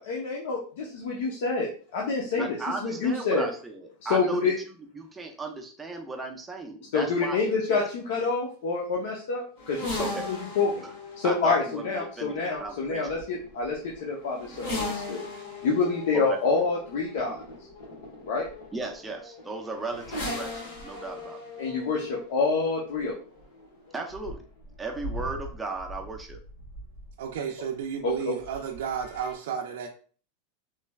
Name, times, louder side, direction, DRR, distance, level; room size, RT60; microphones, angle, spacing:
voice 1, 0.0-3.5 4.0-4.6 6.9-10.8 11.2-15.2 15.6-17.4 18.2-18.5 21.6-23.1 28.0-28.1, left 4 dB, 65° left, -2 dB, 0.7 m, -27 dB
voice 2, 2.4-7.8 10.0-10.3 10.8-10.9 11.2-13.1 16.1-16.4 18.7-21.4 23.9-24.4 24.8-26.4, right 3 dB, 10° right, 2 dB, 0.4 m, -36 dB
sound 1, 9.6-27.3 28.4-29.3, left 2 dB, 80° left, 1.5 m, -39 dB
voice 3, 27.2-29.9, right 7 dB, 75° right, 1 dB, 0.4 m, -32 dB
3.2 x 3.1 x 2.3 m, 0.42 s
supercardioid pair, 165°, 0 cm